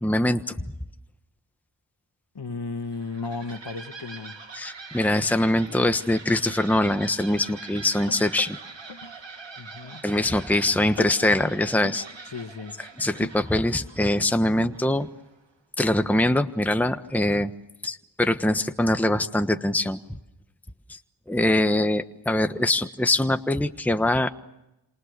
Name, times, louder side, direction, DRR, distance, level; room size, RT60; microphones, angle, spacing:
voice 1, 0.0-0.5 4.5-8.6 10.0-12.0 13.0-15.1 15.8-17.5 17.8-20.0 20.9-21.0 21.3-24.3, left 1 dB, 5° left, 8 dB, 1.2 m, -23 dB
voice 2, 2.3-4.4 9.6-10.0 12.3-12.8, left 3 dB, 55° left, 8 dB, 2.0 m, -34 dB
sound 1, 2.8-15.4, right 4 dB, 65° right, 2.6 m, -43 dB
sound 2, 8.0-9.2 9.5-9.9 10.3-10.6 10.8-12.0 12.9-13.6 13.9-14.0, left 6 dB, 75° left, 1.8 m, -42 dB
30.0 x 27.5 x 6.7 m, 0.92 s
cardioid pair, 40°, 48 cm